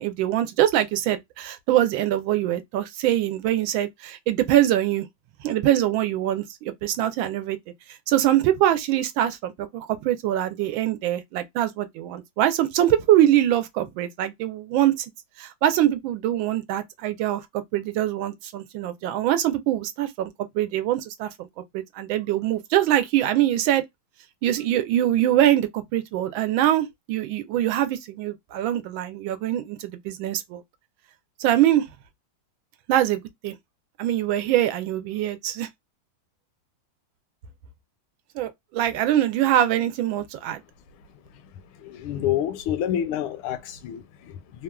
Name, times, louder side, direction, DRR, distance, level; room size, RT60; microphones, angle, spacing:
voice 1, 0.0-5.1 5.4-7.6 7.9-15.1 15.4-21.5 21.7-23.8 24.4-30.6 31.4-31.9 32.9-33.6 34.0-35.7 38.3-40.6, right 12 dB, 75° right, 1.3 m, -23 dB
voice 2, 41.8-44.6, left 10 dB, 85° left, 1.4 m, -28 dB
3.4 x 2.4 x 2.2 m
omnidirectional pair, 2.3 m